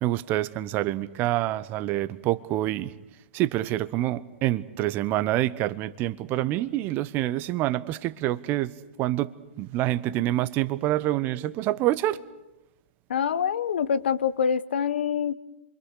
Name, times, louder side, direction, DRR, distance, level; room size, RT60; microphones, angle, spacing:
voice 1, 0.0-2.9 3.3-8.7 9.0-9.3 9.6-12.2, right 15 dB, 30° right, 1.0 m, -26 dB
voice 2, 13.1-15.3, left 7 dB, 65° left, 1.0 m, -25 dB
27.5 x 25.0 x 6.6 m
hypercardioid pair, 120°, 6 cm